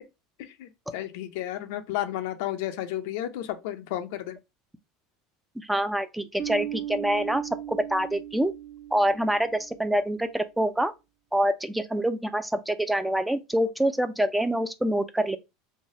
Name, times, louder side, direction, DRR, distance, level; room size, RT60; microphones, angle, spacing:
voice 1, 0.4-4.4, left 13 dB, 70° left, 0.5 m, -32 dB
voice 2, 5.6-8.5 8.9-10.9 11.3-15.4, right 1 dB, 5° right, 0.4 m, -26 dB
Bass guitar, 6.4-9.9, right 11 dB, 65° right, 1.0 m, -37 dB
3.2 x 2.2 x 2.7 m
hypercardioid pair, 90°, 0 cm